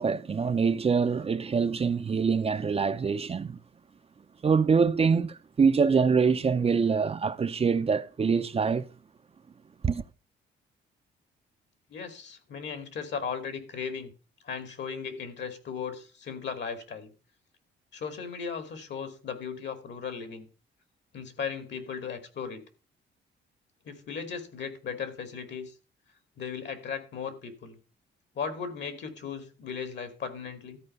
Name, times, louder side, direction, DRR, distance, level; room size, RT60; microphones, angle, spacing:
voice 1, 0.0-3.6 4.4-8.9 9.8-10.0, right 5 dB, 30° right, 0.6 m, -25 dB
voice 2, 11.9-14.1 14.4-17.1 17.9-20.5 21.1-22.6 23.9-25.7 26.4-27.8 28.4-30.8, left 6 dB, 60° left, 2.3 m, -37 dB
13.0 x 4.5 x 6.5 m
cardioid pair, 90°, 20 cm